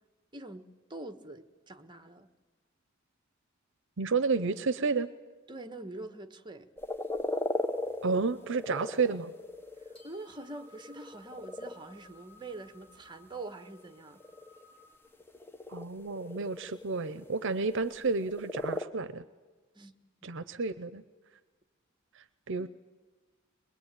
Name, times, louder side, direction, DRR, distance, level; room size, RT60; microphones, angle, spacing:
voice 1, 0.3-2.3 5.5-6.7 9.8-14.2 19.7-19.9 20.2-20.4 22.6-22.7, right 2 dB, 20° right, 1.3 m, -45 dB
voice 2, 4.0-5.1 8.0-9.3 15.7-19.2 20.2-21.0 22.5-22.7, right 4 dB, 65° right, 0.8 m, -31 dB
Frogs In A Pond, 6.8-10.1 10.6-11.8 13.8-18.8, left 2 dB, 10° left, 1.2 m, -37 dB
sound 1, 8.3-15.0, left 2 dB, 25° left, 5.5 m, -61 dB
22.5 x 21.5 x 9.0 m
head